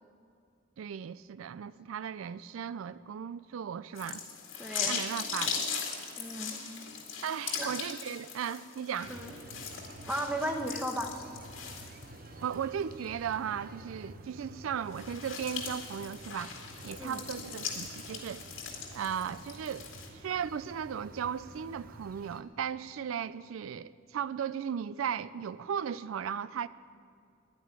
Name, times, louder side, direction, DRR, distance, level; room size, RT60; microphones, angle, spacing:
voice 1, 0.8-4.2 4.8-5.7 7.2-9.1 12.4-16.5 16.8-18.4 18.9-26.7, right 8 dB, 90° right, 0.4 m, -36 dB
sound 1, 4.0-12.5 13.0-13.1 14.8-20.1, left 6 dB, 75° left, 2.1 m, -39 dB
voice 2, 4.6-5.1 6.2-6.6 7.6-7.7 9.1-9.4 10.1-11.2 17.0-17.2, right 1 dB, 5° right, 1.0 m, -35 dB
sound 2, 9.0-22.4, right 1 dB, 45° right, 0.8 m, -50 dB
11.5 x 9.1 x 9.5 m
head